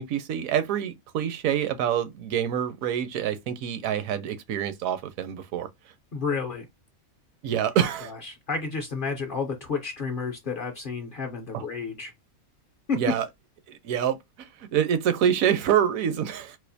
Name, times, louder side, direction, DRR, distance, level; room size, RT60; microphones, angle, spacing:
voice 1, 0.0-5.7 7.4-8.1 11.5-11.6 13.0-13.3 13.7-16.6, right 9 dB, 75° right, 1.0 m, -26 dB
voice 2, 6.1-6.7 8.0-12.1 12.9-13.0, left 4 dB, 55° left, 0.6 m, -31 dB
4.1 x 2.4 x 2.6 m
omnidirectional pair, 1.5 m